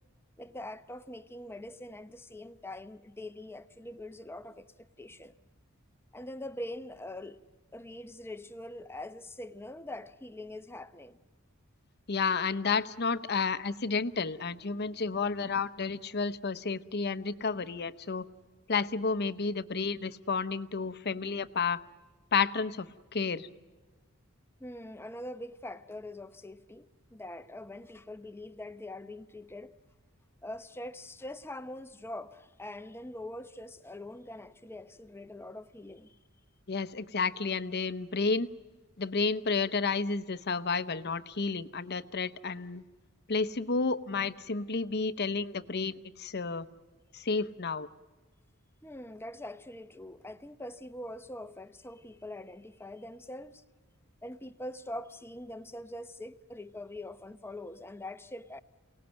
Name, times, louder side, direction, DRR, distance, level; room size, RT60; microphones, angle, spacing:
voice 1, 0.4-5.3 6.1-7.4 7.7-11.2 24.6-29.8 30.4-36.2 48.8-53.6 54.2-58.6, left 1 dB, 10° left, 0.8 m, -43 dB
voice 2, 12.1-18.3 18.7-21.8 22.3-23.5 36.7-38.5 39.0-42.8 43.3-46.7 47.1-47.9, left 4 dB, 50° left, 0.8 m, -31 dB
28.5 x 18.5 x 9.1 m
head